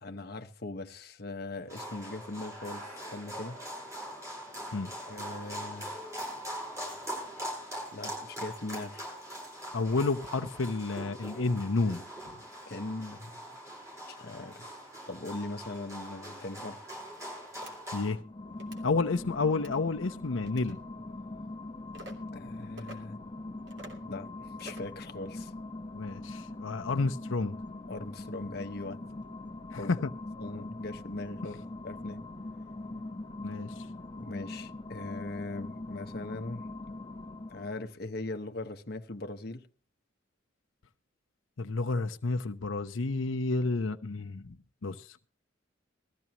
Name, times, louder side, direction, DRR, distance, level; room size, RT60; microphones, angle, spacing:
voice 1, 0.0-3.6 5.1-5.9 7.9-9.1 12.7-13.3 14.1-14.7 15.1-16.8 22.3-23.2 24.0-25.5 27.9-29.0 29.8-30.0 30.4-32.2 34.2-36.7 37.5-39.7, left 2 dB, 55° left, 0.9 m, -40 dB
sound 1, 1.7-18.1, equal, 15° right, 7.6 m, -42 dB
voice 2, 9.7-12.0 17.9-18.2 18.8-20.8 25.9-27.6 29.7-30.1 33.4-33.9 41.6-44.5 44.8-45.2, left 3 dB, 85° left, 0.7 m, -30 dB
sound 2, 17.6-17.7 18.5-18.8 19.5-19.8 20.4-20.8 21.9-22.1 22.8-23.0 23.7-24.0 24.6-24.9, right 1 dB, 65° right, 2.9 m, -47 dB
sound 3, 18.2-37.9, left 2 dB, 25° left, 1.0 m, -42 dB
19.5 x 14.0 x 2.9 m
head